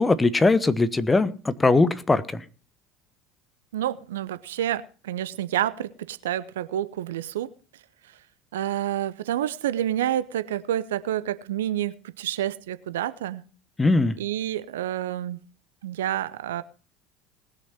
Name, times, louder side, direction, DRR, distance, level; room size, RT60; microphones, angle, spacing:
voice 1, 0.0-2.5 13.8-14.2, left 3 dB, 15° left, 14 dB, 1.1 m, -20 dB
voice 2, 3.7-7.5 8.5-13.4 14.2-15.4 15.8-16.6, right 12 dB, 70° right, 16 dB, 0.7 m, -28 dB
19.5 x 6.6 x 5.7 m, 0.37 s
figure-of-eight pair, 70°, 0 cm